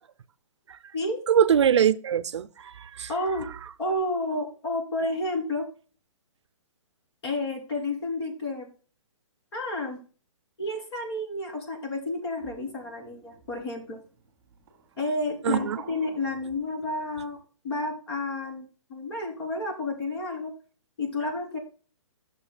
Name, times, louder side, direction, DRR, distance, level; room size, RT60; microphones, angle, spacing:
voice 1, 1.3-3.1 15.4-15.8, right 8 dB, 60° right, 0.5 m, -23 dB
voice 2, 3.1-3.5 3.8-5.7 7.2-8.7 9.5-10.0 10.6-14.0 15.0-17.4 17.6-20.5 21.0-21.6, left 2 dB, 55° left, 2.9 m, -31 dB
sound 1, 12.4-17.4, right 7 dB, 15° right, 2.1 m, -45 dB
12.0 x 6.6 x 2.2 m
hypercardioid pair, 170°, 17 cm